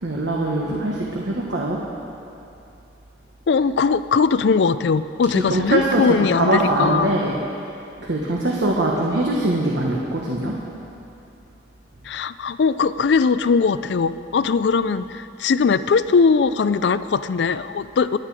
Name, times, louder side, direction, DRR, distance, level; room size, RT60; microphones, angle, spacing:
voice 1, 0.0-1.8 5.3-7.4 8.0-10.6, right 1 dB, 70° right, -2 dB, 1.4 m, -22 dB
voice 2, 3.5-7.1 12.1-18.2, left 5 dB, 70° left, 14 dB, 0.4 m, -20 dB
23.0 x 9.3 x 4.9 m, 2.7 s
head